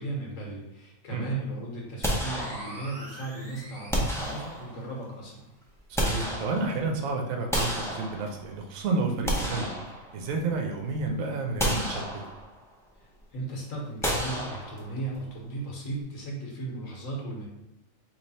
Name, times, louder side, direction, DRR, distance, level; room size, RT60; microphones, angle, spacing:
voice 1, 0.0-5.4 13.0-17.5, right 2 dB, 75° left, -2 dB, 1.4 m, -36 dB
sound 1, 2.0-3.1 3.9-5.0 5.6-7.0 7.5-8.6 9.0-10.5 10.9-11.0 11.6-12.7 14.0-15.1, equal, 5° left, 0.4 m, -31 dB
sound 2, 2.0-4.7, right 1 dB, 45° right, 1.3 m, -44 dB
voice 2, 5.9-9.7 10.1-12.2, right 3 dB, 80° right, 2 dB, 1.1 m, -30 dB
3.3 x 3.0 x 4.0 m, 0.93 s
omnidirectional pair, 1.4 m